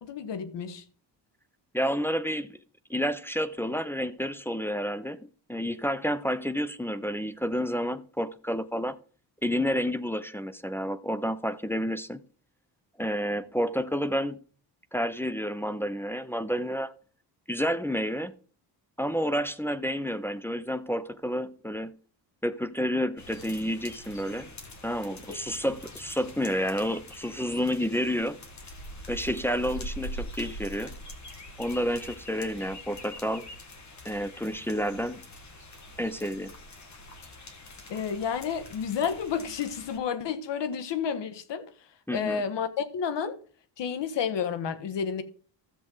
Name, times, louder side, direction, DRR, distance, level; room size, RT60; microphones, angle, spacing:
voice 1, 0.0-0.8 37.9-41.7 42.1-43.4 43.8-45.2, left 7 dB, 75° left, 1.4 m, -30 dB
voice 2, 1.7-2.5 2.9-5.2 5.5-9.0 9.4-12.2 13.0-14.4 14.9-16.9 17.5-18.3 19.0-22.0 22.4-24.5 24.8-28.4 29.1-30.9 31.6-33.4 34.0-35.2 36.0-36.5 42.1-42.4, equal, 5° left, 0.5 m, -30 dB
sound 1, 23.2-40.0, left 1 dB, 40° left, 1.7 m, -44 dB
13.5 x 7.3 x 3.9 m
cardioid pair, 115°, 43 cm